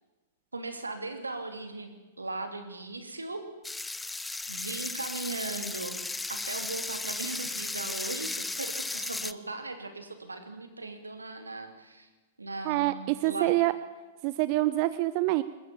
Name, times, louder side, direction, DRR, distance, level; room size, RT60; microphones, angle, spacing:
voice 1, 0.5-3.4 4.5-6.0 6.3-12.1 12.4-13.5, right 3 dB, 85° right, 7 dB, 3.0 m, -38 dB
sound 1, 3.6-9.3, left 3 dB, 5° left, 0.8 m, -35 dB
voice 2, 12.6-13.7 14.2-15.4, right 18 dB, 45° right, 14 dB, 0.8 m, -26 dB
21.5 x 20.5 x 7.2 m, 1.2 s
figure-of-eight pair, 105°, 0 cm